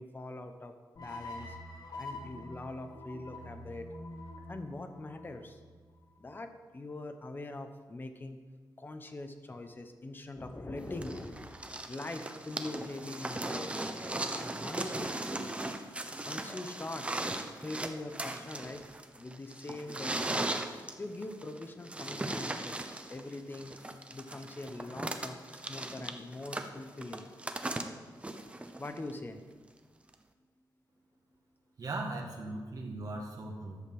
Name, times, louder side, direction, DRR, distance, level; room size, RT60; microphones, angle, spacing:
voice 1, 0.0-1.6 2.0-3.9 4.5-5.6 6.2-8.4 8.8-15.2 16.3-17.1 17.6-18.9 19.2-22.8 23.1-23.8 24.1-27.3 28.8-29.4, left 2 dB, 25° left, 7 dB, 1.0 m, -43 dB
sound 1, 1.0-6.2, left 2 dB, 60° left, 2.0 m, -46 dB
sound 2, 11.0-29.1 30.1-30.2, right 2 dB, 15° right, 0.8 m, -38 dB
voice 2, 31.8-33.8, right 2 dB, 50° right, 0 dB, 1.6 m, -38 dB
12.0 x 6.6 x 7.7 m, 1.4 s
wide cardioid pair, 145°, 8 cm